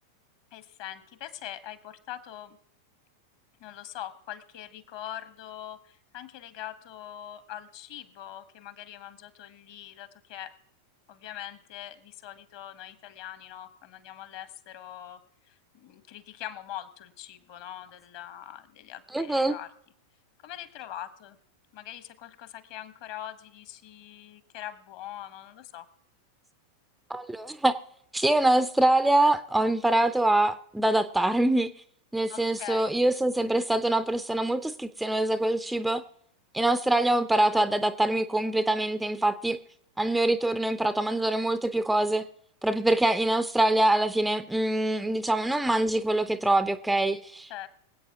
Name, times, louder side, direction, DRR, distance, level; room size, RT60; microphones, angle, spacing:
voice 1, 0.5-2.6 3.6-10.5 11.1-15.2 15.4-19.7 20.4-21.4 21.7-25.9 32.3-32.9 47.5-47.7, left 12 dB, 45° left, 1.0 m, -42 dB
voice 2, 19.1-19.6 27.1-27.7 28.1-31.7 32.1-36.0 36.5-39.6 40.0-42.3 42.6-47.5, right 1 dB, 5° right, 0.4 m, -24 dB
24.5 x 8.3 x 2.8 m
figure-of-eight pair, 90°, 0 cm